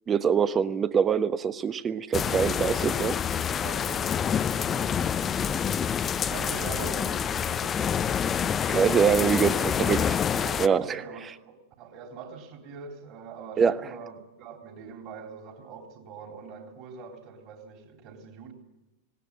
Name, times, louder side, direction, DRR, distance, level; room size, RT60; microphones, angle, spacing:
voice 1, 0.1-3.2 8.7-10.2 10.6-11.0 13.6-13.9, right 7 dB, 20° right, 1.0 m, -24 dB
sound 1, 2.1-10.7, left 8 dB, 25° left, 0.7 m, -27 dB
voice 2, 3.5-5.7 6.3-8.0 10.3-18.5, right 5 dB, 40° right, 3.9 m, -43 dB
19.0 x 19.0 x 8.9 m
figure-of-eight pair, 90°, 0 cm